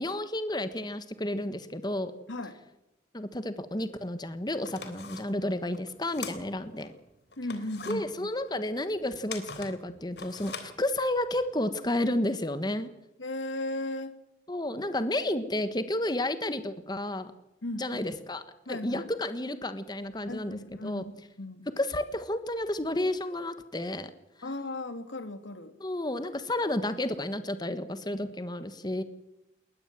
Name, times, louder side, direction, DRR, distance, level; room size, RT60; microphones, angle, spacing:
voice 1, 0.0-2.1 3.1-6.9 7.9-12.9 14.5-17.3 17.8-18.4 18.7-21.0 21.8-24.1 24.4-24.5 25.8-29.0, left 1 dB, 20° left, 11 dB, 1.3 m, -31 dB
sound 1, 4.0-4.1 4.5-6.9 7.3-11.4, left 5 dB, 60° left, 3.5 m, -43 dB
voice 2, 7.4-8.3 13.2-14.1 17.6-18.1 18.7-19.1 20.2-21.1 21.4-21.7 24.4-25.7, left 2 dB, 90° left, 10 dB, 2.6 m, -36 dB
21.0 x 20.0 x 7.5 m, 0.93 s
head